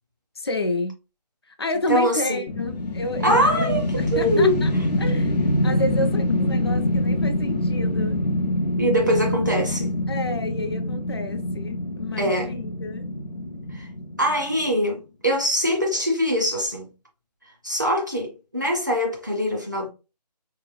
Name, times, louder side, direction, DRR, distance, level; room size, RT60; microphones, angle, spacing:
voice 1, 0.4-0.9 1.5-4.7 5.0-8.2 10.1-13.1, left 2 dB, 35° left, 0.4 m, -30 dB
voice 2, 1.9-2.4 3.2-4.6 8.8-9.9 12.2-12.5 13.7-13.9 14.2-16.9 17.6-19.9, equal, 30° right, 0.4 m, -23 dB
sound 1, 2.5-14.7, left 1 dB, 75° left, 0.7 m, -25 dB
3.3 x 2.9 x 2.3 m
figure-of-eight pair, 170°, 21 cm